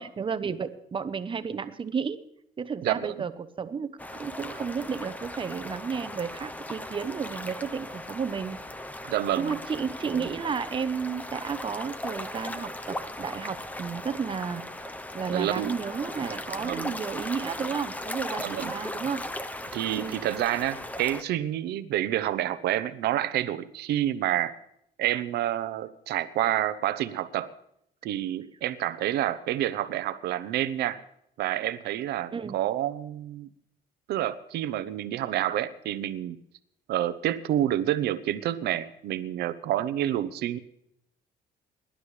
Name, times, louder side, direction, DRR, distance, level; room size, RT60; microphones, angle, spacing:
voice 1, 0.0-2.2 2.6-3.3 3.6-8.6 9.4-14.6 15.1-19.3 20.0-20.2 32.3-32.6, right 6 dB, 30° right, 12 dB, 1.0 m, -32 dB
voice 2, 2.8-3.3 9.1-9.6 15.3-15.8 16.6-16.9 18.4-18.7 19.7-24.5 25.0-27.5 28.0-31.0 31.4-33.5 34.1-36.4 36.9-40.6, right 12 dB, 75° right, 13 dB, 0.9 m, -28 dB
sound 1, 4.0-21.2, left 1 dB, 10° left, 0.8 m, -38 dB
21.5 x 11.5 x 3.3 m, 0.74 s
cardioid pair, 110°, 17 cm